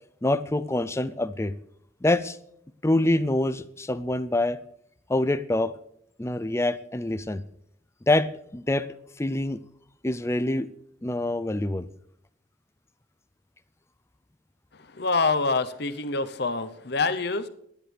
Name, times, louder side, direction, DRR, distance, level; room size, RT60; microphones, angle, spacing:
voice 1, 0.2-1.5 2.0-2.4 2.8-4.6 5.1-5.7 6.2-7.4 8.1-8.9 9.2-9.6 10.0-10.7 11.0-11.9, left 1 dB, 15° left, 13 dB, 0.5 m, -25 dB
voice 2, 14.7-17.5, left 3 dB, 55° left, 11 dB, 0.8 m, -26 dB
22.5 x 10.0 x 3.4 m, 0.72 s
head